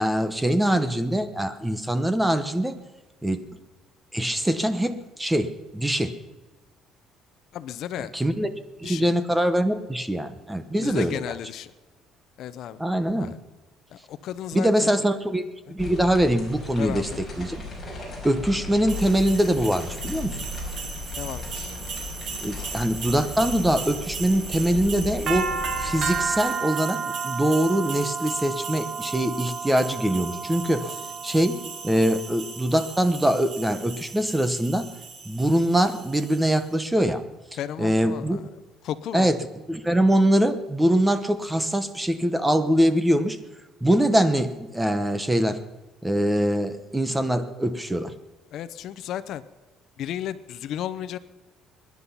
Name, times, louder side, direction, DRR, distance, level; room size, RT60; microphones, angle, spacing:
voice 1, 0.0-2.8 3.2-3.4 4.1-6.2 8.1-8.5 8.8-11.2 12.8-13.3 14.5-15.4 15.7-17.1 17.4-17.6 18.2-20.4 22.4-30.9 31.2-34.9 35.2-37.2 37.8-38.4 39.1-39.4 39.7-43.4 43.8-45.6 46.0-48.1, right 1 dB, 5° right, 11 dB, 0.9 m, -23 dB
voice 2, 7.5-8.1 8.8-9.1 10.8-11.7 12.4-12.8 13.2-13.4 13.9-15.0 16.8-17.2 21.2-21.8 30.8-30.9 37.5-38.5 38.8-39.3 48.5-49.4 50.0-51.2, left 11 dB, 55° left, 14 dB, 0.7 m, -34 dB
sound 1, 15.8-26.2, left 2 dB, 15° left, 5.1 m, -36 dB
sound 2, 18.9-36.6, right 5 dB, 45° right, 1.6 m, -34 dB
23.0 x 10.5 x 5.6 m, 1.2 s
cardioid pair, 165°, 0 cm